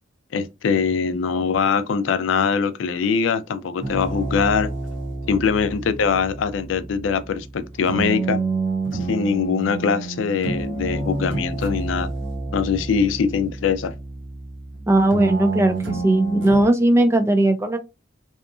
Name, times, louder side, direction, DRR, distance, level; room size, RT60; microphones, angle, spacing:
voice 1, 0.3-4.7 5.3-8.4 8.9-12.1 12.5-13.9, left 6 dB, 90° left, 0.4 m, -22 dB
sound 1, 3.8-16.7, right 3 dB, 70° right, 0.6 m, -29 dB
voice 2, 14.9-17.8, right 1 dB, 15° right, 0.3 m, -18 dB
2.8 x 2.3 x 2.4 m
head